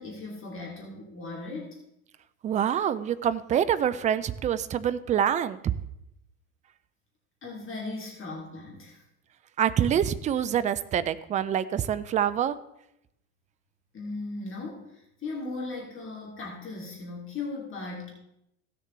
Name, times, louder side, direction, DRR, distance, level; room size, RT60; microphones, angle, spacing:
voice 1, 0.0-1.7 7.4-9.0 13.9-18.1, left 3 dB, 30° left, -2 dB, 2.7 m, -37 dB
voice 2, 2.4-5.7 9.6-12.6, right 9 dB, 20° right, 14 dB, 0.3 m, -26 dB
16.5 x 6.8 x 3.2 m, 0.81 s
hypercardioid pair, 85°, 43 cm